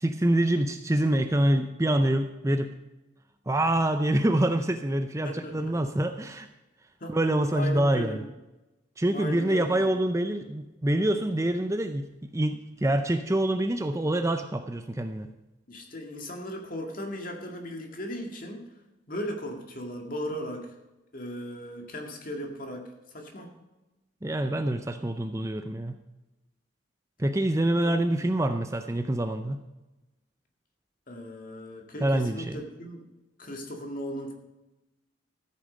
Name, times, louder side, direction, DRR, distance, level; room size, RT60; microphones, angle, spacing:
voice 1, 0.0-2.7 3.5-6.5 7.1-8.2 9.0-15.3 24.2-26.0 27.2-29.6 32.0-32.6, right 1 dB, 15° right, 8 dB, 0.5 m, -26 dB
voice 2, 5.2-5.9 7.0-7.1 7.5-8.2 9.1-9.8 15.7-18.6 19.1-20.7 21.1-22.8 23.1-23.5 27.8-28.1 31.1-33.1 33.4-34.3, equal, 45° left, 2 dB, 2.1 m, -37 dB
14.0 x 8.5 x 5.1 m, 1.0 s
head